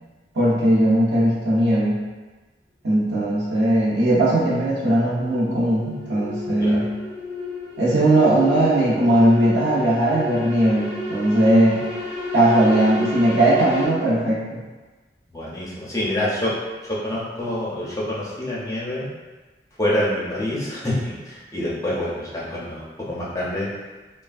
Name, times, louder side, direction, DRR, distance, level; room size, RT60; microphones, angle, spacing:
voice 1, 0.3-2.0 2.8-6.9 7.8-11.8 12.3-14.6, right 1 dB, 90° right, -6 dB, 0.8 m, -19 dB
sound 1, 3.5-13.9, left 3 dB, 5° right, 1.3 m, -31 dB
voice 2, 15.3-16.5 16.9-19.1 19.8-23.7, left 1 dB, 20° left, -7 dB, 0.5 m, -26 dB
3.2 x 2.2 x 2.4 m, 1.3 s
head